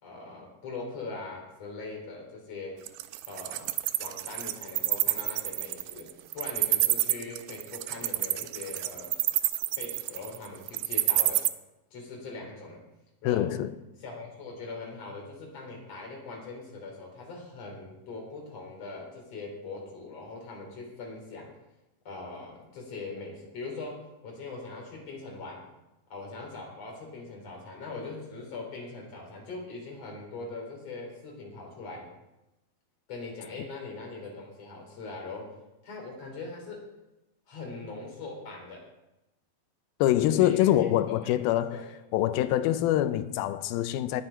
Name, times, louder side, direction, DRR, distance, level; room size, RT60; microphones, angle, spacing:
voice 1, 0.0-2.8 3.3-3.7 4.0-9.1 9.8-11.5 11.9-12.8 13.2-13.5 14.0-21.5 22.1-25.6 26.1-32.1 33.1-35.5 35.8-36.9 37.5-38.9 40.3-41.9, left 3 dB, 45° left, 4.3 m, -41 dB
Wild animals, 2.9-11.5, right 16 dB, 85° right, 1.9 m, -27 dB
voice 2, 13.2-13.7 40.0-41.8 42.1-44.2, left 13 dB, 90° left, 2.5 m, -25 dB
19.0 x 7.9 x 4.5 m
omnidirectional pair, 4.2 m